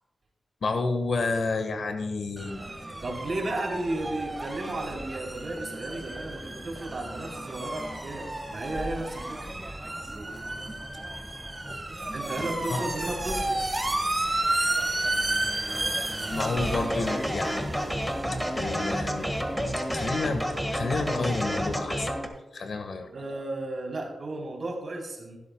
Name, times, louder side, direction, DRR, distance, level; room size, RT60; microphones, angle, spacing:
voice 1, 0.6-2.6 12.7-12.9 16.3-17.7 18.3-19.3 19.9-20.5 20.7-22.1 22.5-23.1, left 3 dB, 70° left, 7 dB, 1.5 m, -30 dB
sound 1, 2.4-21.8, right 1 dB, 20° right, 1.3 m, -33 dB
voice 2, 3.0-9.5 12.1-13.6 22.6-22.7 23.1-25.4, right 2 dB, 55° right, 0 dB, 3.5 m, -34 dB
sound 2, 6.7-11.8 12.1-12.6, left 1 dB, 20° left, 2.0 m, -48 dB
sound 3, 16.3-22.3, equal, ahead, 1.7 m, -30 dB
15.5 x 12.0 x 2.3 m, 1.1 s
wide cardioid pair, 90°, 0 cm